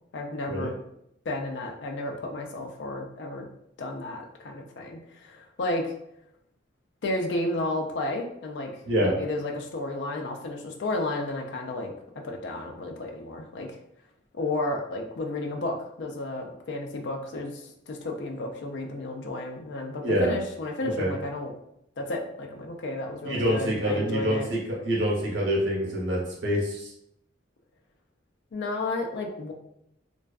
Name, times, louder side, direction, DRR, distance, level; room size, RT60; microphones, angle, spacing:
voice 1, 0.1-0.7 1.3-3.5 3.8-6.0 7.0-8.7 9.0-11.9 12.2-13.7 14.3-21.5 22.0-24.5 28.5-29.5, left 2 dB, 65° left, 2 dB, 0.4 m, -32 dB
voice 2, 8.8-9.1 20.0-20.3 20.8-21.1 23.2-26.9, equal, 70° right, -4 dB, 0.9 m, -26 dB
2.5 x 2.2 x 2.3 m, 0.78 s
head